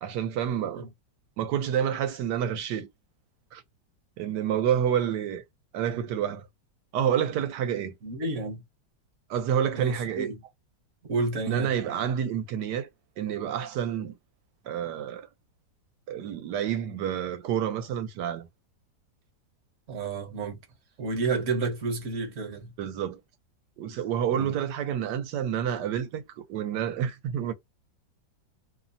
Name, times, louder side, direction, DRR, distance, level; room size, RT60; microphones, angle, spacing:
voice 1, 0.0-0.9 1.4-2.9 3.5-3.6 4.2-5.4 5.7-6.4 6.9-7.9 9.3-10.3 11.5-12.9 13.2-14.1 14.7-15.3 16.1-18.5 22.8-23.2 23.8-27.5, right 9 dB, 75° right, 1.2 m, -28 dB
voice 2, 8.0-8.6 9.7-10.4 11.0-11.8 19.9-20.6 21.0-22.7 24.3-24.5, right 3 dB, 50° right, 1.2 m, -30 dB
3.1 x 2.0 x 2.5 m
omnidirectional pair, 1.9 m